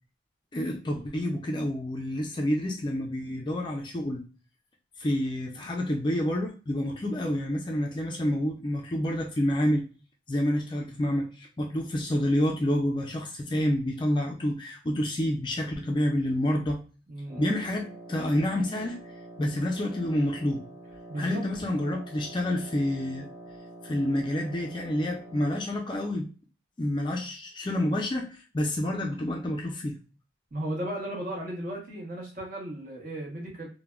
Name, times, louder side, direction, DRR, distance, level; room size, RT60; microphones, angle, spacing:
voice 1, 0.5-4.2 5.0-9.9 10.3-16.8 17.4-19.0 19.4-20.6 21.2-23.3 23.8-26.3 26.8-30.0, left 1 dB, 25° left, 2 dB, 0.3 m, -28 dB
voice 2, 17.1-17.4 21.1-21.5 30.5-33.7, right 1 dB, 45° right, -1 dB, 0.9 m, -35 dB
Wind instrument woodwind instrument, 17.3-25.8, right 2 dB, 20° right, 0.9 m, -46 dB
3.3 x 2.1 x 2.2 m, 0.35 s
head